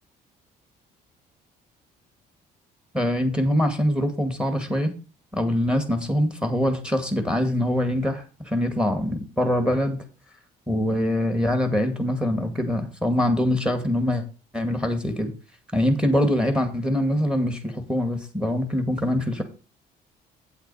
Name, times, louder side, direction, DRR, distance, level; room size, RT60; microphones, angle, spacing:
voice 1, 2.9-4.9 5.3-10.0 10.7-14.2 14.5-15.3 15.7-19.4, left 1 dB, 5° right, 6 dB, 2.1 m, -24 dB
8.4 x 8.0 x 4.3 m, 0.32 s
cardioid pair, 110°, 17 cm